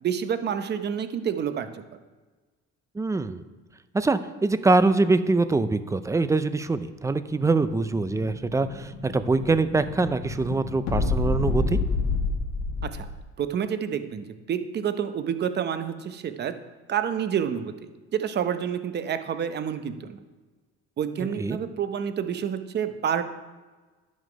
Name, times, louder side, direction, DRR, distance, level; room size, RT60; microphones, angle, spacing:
voice 1, 0.0-1.8 12.9-13.1 13.4-16.5 16.9-20.2 21.0-23.2, right 8 dB, 35° right, 10 dB, 0.7 m, -28 dB
voice 2, 3.0-3.4 3.9-11.8 21.4-21.6, right 3 dB, 10° right, 12 dB, 0.4 m, -24 dB
Explosion, 7.4-13.2, left 3 dB, 65° left, 1.5 m, -29 dB
11.0 x 6.4 x 5.1 m, 1.3 s
cardioid pair, 130°, 29 cm